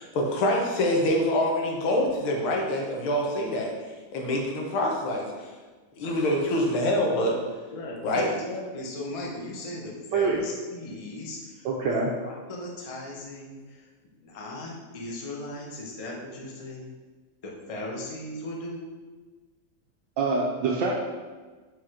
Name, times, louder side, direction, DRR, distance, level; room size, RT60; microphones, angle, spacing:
voice 1, 0.0-3.7 4.1-5.5 6.0-7.4 8.0-8.3, left 1 dB, 85° left, 0 dB, 1.9 m, -25 dB
voice 2, 7.7-16.9 17.4-18.9, left 1 dB, 60° left, -2 dB, 0.3 m, -38 dB
voice 3, 10.1-10.4 11.6-12.1 20.2-20.9, right 4 dB, 70° right, -2 dB, 1.2 m, -25 dB
4.8 x 4.2 x 4.8 m, 1.3 s
omnidirectional pair, 2.3 m